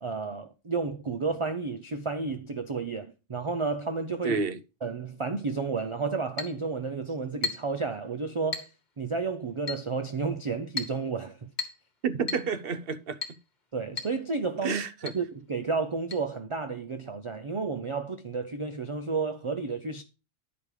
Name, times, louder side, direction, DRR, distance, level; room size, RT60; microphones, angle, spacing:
voice 1, 0.0-4.4 4.8-8.7 9.0-11.5 13.7-14.8 15.1-20.0, right 4 dB, 35° right, 0.5 m, -31 dB
voice 2, 4.2-4.6 12.0-13.2 14.6-15.1, right 5 dB, 55° right, 0.9 m, -30 dB
Chink clink, 6.4-6.6 7.4-7.8 8.5-8.8 9.7-9.9 10.8-11.0 11.6-11.9 12.3-12.5 13.2-13.4 14.0-14.2 14.4-14.5 15.1-15.2 16.1-16.2, left 5 dB, 40° left, 1.5 m, -34 dB
10.5 x 5.2 x 4.8 m
omnidirectional pair, 1.2 m